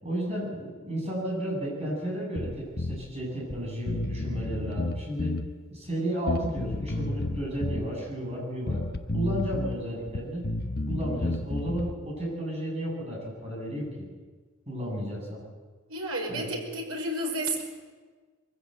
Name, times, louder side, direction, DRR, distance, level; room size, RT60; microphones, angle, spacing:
voice 1, 0.0-5.3 5.7-8.8 9.1-10.4 10.9-14.1 14.7-15.4 16.3-16.5, equal, 30° right, -2 dB, 7.7 m, -33 dB
Bass guitar, 2.4-3.0 3.5-3.6 3.9-5.5 6.3-7.9 8.7-9.8 10.1-11.9, left 2 dB, 45° left, 0.9 m, -31 dB
voice 2, 15.9-17.6, right 1 dB, 85° right, 1 dB, 5.3 m, -31 dB
22.0 x 15.5 x 8.0 m, 1.4 s
head